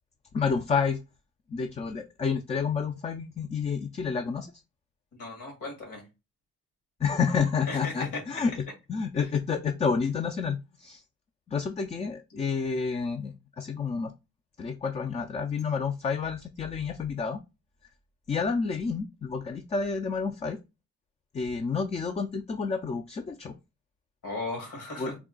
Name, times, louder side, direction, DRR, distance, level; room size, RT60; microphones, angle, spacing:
voice 1, 0.3-1.0 1.5-4.5 7.0-8.5 8.9-11.0 11.5-14.1 14.6-17.4 18.3-20.6 21.3-23.6 25.0-25.2, left 5 dB, 20° left, 0.3 m, -29 dB
voice 2, 5.2-6.0 7.7-8.2 24.2-25.1, left 2 dB, 80° left, 2.1 m, -36 dB
3.5 x 2.2 x 3.8 m
cardioid pair, 90°, 30 cm